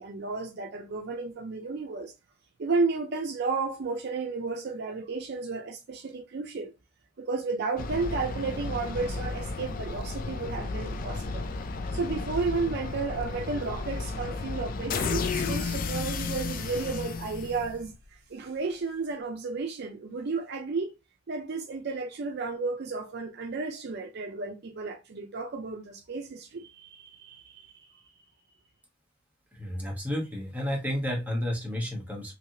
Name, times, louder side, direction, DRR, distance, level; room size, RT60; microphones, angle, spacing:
voice 1, 0.0-2.1 2.6-6.7 7.2-11.5 11.9-17.9 18.3-20.9 21.3-27.8, right 4 dB, 55° right, 0.5 m, -33 dB
sound 1, 7.8-18.0, left 4 dB, 45° left, 0.4 m, -33 dB
voice 2, 29.5-32.3, equal, 10° right, 1.1 m, -31 dB
3.1 x 2.7 x 2.7 m
head